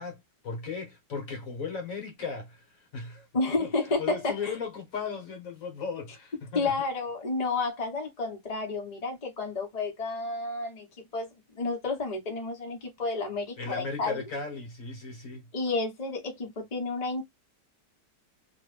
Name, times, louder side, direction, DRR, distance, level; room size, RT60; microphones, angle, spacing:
voice 1, 0.0-2.6 2.9-3.3 3.6-3.7 4.0-6.7 13.6-15.4, left 5 dB, 55° left, 1.4 m, -36 dB
voice 2, 3.3-4.5 6.5-10.9 11.1-11.3 11.6-14.2 15.5-17.2, left 3 dB, 30° left, 0.9 m, -31 dB
3.0 x 2.5 x 3.2 m
omnidirectional pair, 1.8 m